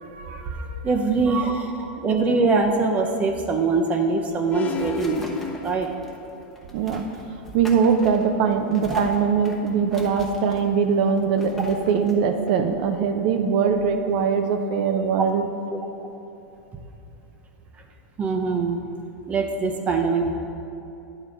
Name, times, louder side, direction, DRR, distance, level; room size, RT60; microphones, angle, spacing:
voice 1, 0.0-0.8 6.7-7.0 7.5-15.5, right 6 dB, 60° right, 6 dB, 0.6 m, -22 dB
voice 2, 0.8-5.3 5.6-5.9 8.9-9.0 15.2-15.3 18.2-18.8 19.3-20.3, right 4 dB, 25° right, 3 dB, 0.8 m, -23 dB
sound 1, 4.1-13.4, equal, 5° left, 1.0 m, -42 dB
sound 2, 4.5-6.5, left 6 dB, 25° left, 0.4 m, -34 dB
10.0 x 3.6 x 5.2 m, 2.9 s
hypercardioid pair, 120°, 5 cm